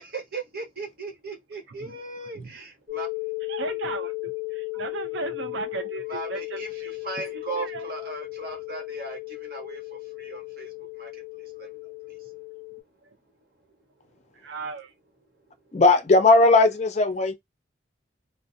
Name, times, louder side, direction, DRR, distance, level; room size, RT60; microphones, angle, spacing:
voice 1, 0.0-3.3 6.1-12.6 14.4-14.5 15.4-15.8, right 3 dB, 50° right, 1.1 m, -38 dB
sound 1, 2.9-12.8, left 31 dB, 25° right, 0.6 m, -35 dB
voice 2, 3.5-6.9 7.6-7.8 13.0-13.1 14.3-14.9, right 4 dB, 75° right, 0.4 m, -36 dB
voice 3, 15.7-17.3, left 3 dB, 35° left, 0.4 m, -18 dB
2.5 x 2.0 x 2.5 m
head